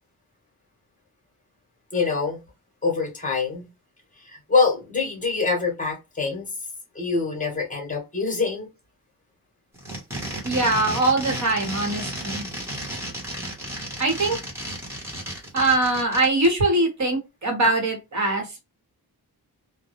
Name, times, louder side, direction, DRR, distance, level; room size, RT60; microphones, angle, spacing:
voice 1, 1.9-2.4 2.8-3.7 4.2-6.5 6.9-8.7, left 4 dB, 20° left, 0.9 m, -25 dB
sound 1, 9.7-16.5, right 1 dB, 5° right, 0.9 m, -33 dB
voice 2, 10.4-12.4 14.0-14.4 15.5-18.6, right 2 dB, 45° right, 1.0 m, -22 dB
2.2 x 2.1 x 2.9 m
wide cardioid pair, 150°, 39 cm